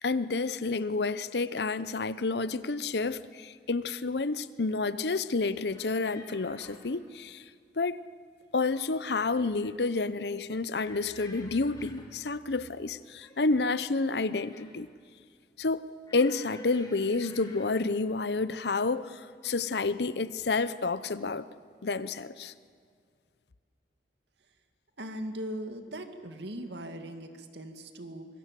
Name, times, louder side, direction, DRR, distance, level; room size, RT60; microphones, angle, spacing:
voice 1, 0.0-7.4 7.8-8.0 8.5-14.9 15.6-15.8 16.1-21.5 21.8-22.5, left 3 dB, 70° left, 15 dB, 0.8 m, -29 dB
sound 1, 5.7-6.9 8.4-9.0 9.3-9.8 10.8-12.2 13.2-14.9 16.0-17.9 18.8-19.1 19.4-19.6, left 2 dB, 20° left, 3.2 m, -53 dB
voice 2, 25.0-28.3, right 1 dB, 80° right, 6 dB, 2.2 m, -39 dB
25.0 x 22.5 x 7.6 m, 2.1 s
head